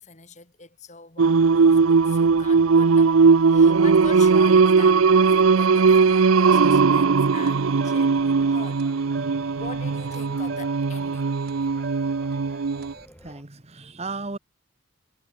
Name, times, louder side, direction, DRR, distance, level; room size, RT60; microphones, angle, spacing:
voice 1, 0.0-3.1 3.5-8.8 9.6-11.4, left 4 dB, 35° left, 3.9 m, -42 dB
sound 1, 1.2-13.4, equal, 5° left, 5.7 m, -52 dB
Singing, 1.2-12.9, right 5 dB, 85° right, 0.6 m, -18 dB
sound 2, 6.4-13.1, right 3 dB, 45° right, 1.4 m, -38 dB
voice 2, 12.9-14.4, right 3 dB, 30° right, 1.4 m, -36 dB
head